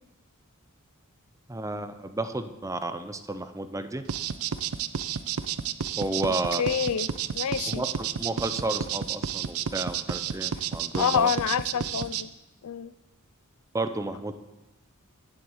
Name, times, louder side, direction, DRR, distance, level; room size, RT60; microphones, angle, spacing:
voice 1, 1.5-4.0 6.0-6.6 7.7-11.3 13.7-14.3, right 2 dB, 15° right, 10 dB, 0.6 m, -32 dB
sound 1, 4.1-12.2, right 8 dB, 75° right, 0.5 m, -31 dB
voice 2, 6.6-7.1 7.3-7.8 11.0-12.3 12.6-12.9, left 7 dB, 85° left, 16 dB, 0.5 m, -27 dB
10.5 x 7.6 x 7.2 m, 1.0 s
head